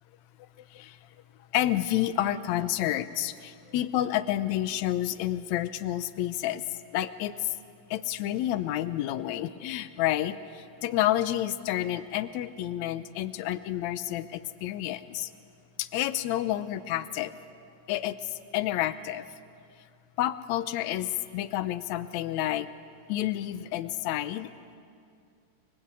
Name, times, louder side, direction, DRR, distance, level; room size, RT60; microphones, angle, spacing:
voice 1, 1.5-6.6 6.9-7.5 7.9-15.3 15.8-17.3 17.9-19.3 20.2-22.7 23.1-24.5, left 13 dB, 75° left, 12 dB, 1.7 m, -29 dB
29.5 x 24.0 x 8.3 m, 2.3 s
omnidirectional pair, 4.1 m